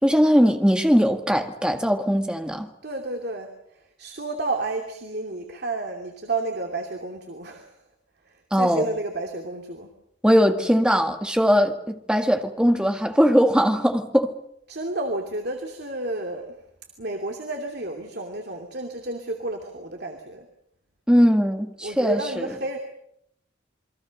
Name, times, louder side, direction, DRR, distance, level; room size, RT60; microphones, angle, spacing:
voice 1, 0.0-2.7 8.5-8.9 10.2-14.3 21.1-22.6, equal, 5° right, 1.9 m, -20 dB
voice 2, 2.8-7.7 8.6-9.9 14.7-16.6 17.0-20.5 21.8-22.8, right 2 dB, 55° right, 2.8 m, -31 dB
28.0 x 22.5 x 6.6 m
head